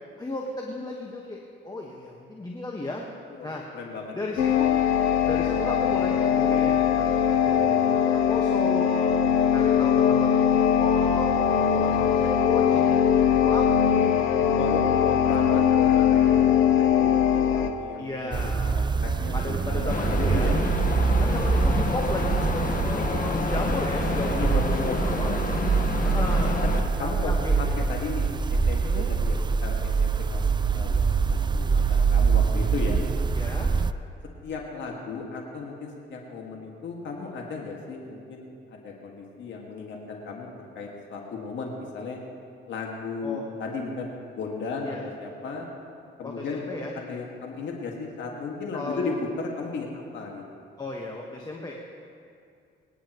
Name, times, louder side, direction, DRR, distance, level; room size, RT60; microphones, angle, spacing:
voice 1, 0.2-3.0 3.4-3.6 4.1-4.7 5.3-9.2 9.5-11.3 11.6-13.0 13.3-14.5 15.0-15.2 18.0-18.8 19.3-20.7 21.2-25.3 26.0-26.6 27.0-27.8 28.8-29.1 33.3-33.7 43.2-43.5 44.8-45.0 46.2-46.9 48.7-49.1 50.8-51.8, left 2 dB, 20° left, -1 dB, 1.4 m, -34 dB
voice 2, 3.3-4.5 14.5-14.8 15.2-16.5 16.8-18.4 18.6-20.6 24.1-26.0 27.0-27.3 27.6-33.0 34.4-42.2 42.7-45.7 46.2-46.6 47.0-49.9 50.1-50.4, left 4 dB, 70° left, -1 dB, 2.0 m, -35 dB
sound 1, 4.4-17.7, left 8 dB, 90° left, 0.9 m, -21 dB
sound 2, 18.3-33.9, right 5 dB, 25° right, 0.4 m, -24 dB
sound 3, 19.9-26.8, left 4 dB, 45° left, 1.5 m, -29 dB
23.5 x 10.5 x 3.1 m, 2.4 s
cardioid pair, 90°, 20 cm